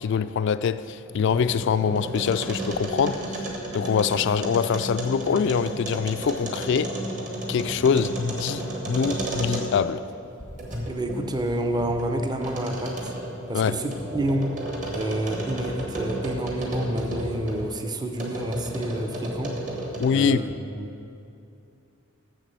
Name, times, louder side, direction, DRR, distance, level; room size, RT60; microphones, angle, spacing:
voice 1, 0.0-3.2 3.7-6.9 7.5-10.0 13.5-13.8 20.0-20.4, left 6 dB, 60° left, 0.3 m, -24 dB
sound 1, 1.0-9.9 10.4-17.7 18.2-20.3, right 1 dB, 40° right, 1.4 m, -33 dB
voice 2, 10.9-13.1 13.5-14.6 14.9-19.5 20.1-20.5 20.8-20.9, right 1 dB, 20° right, 0.6 m, -29 dB
7.4 x 6.9 x 6.8 m
head